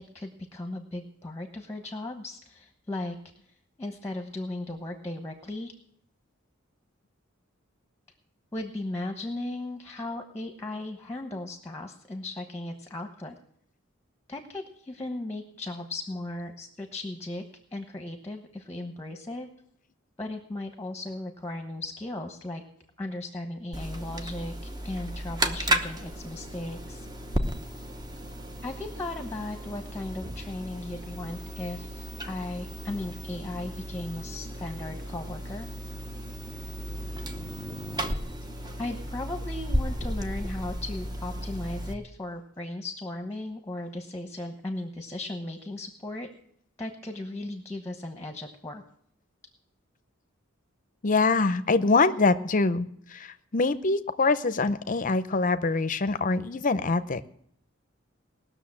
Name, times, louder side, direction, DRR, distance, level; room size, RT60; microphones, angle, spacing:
voice 1, 0.0-3.2 3.8-5.7 8.5-13.4 14.3-17.4 17.7-19.5 20.2-22.6 23.0-27.1 28.6-35.7 38.8-46.3 46.8-48.8, left 2 dB, 10° left, 5 dB, 1.0 m, -36 dB
sound 1, 23.7-41.9, equal, 20° right, 0.9 m, -34 dB
voice 2, 51.0-57.2, left 3 dB, 40° left, 12 dB, 0.7 m, -24 dB
19.5 x 6.6 x 7.6 m, 0.67 s
head